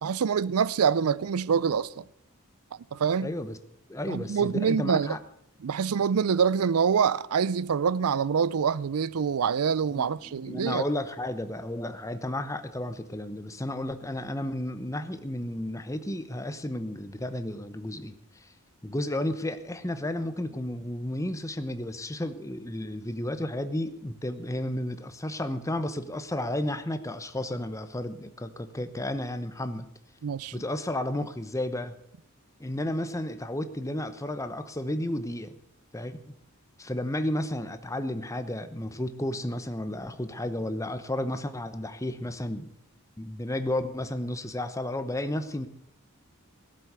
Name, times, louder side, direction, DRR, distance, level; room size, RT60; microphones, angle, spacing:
voice 1, 0.0-2.0 2.9-3.3 4.1-5.1 5.6-10.9 30.2-30.6, right 6 dB, 90° right, 0.5 m, -25 dB
voice 2, 3.2-3.6 3.9-5.2 9.9-10.1 10.5-18.2 18.8-29.9 30.5-32.0 32.6-35.6 35.9-36.2 36.8-42.7 43.2-45.7, left 1 dB, 15° left, 0.9 m, -32 dB
17.5 x 7.7 x 8.2 m
head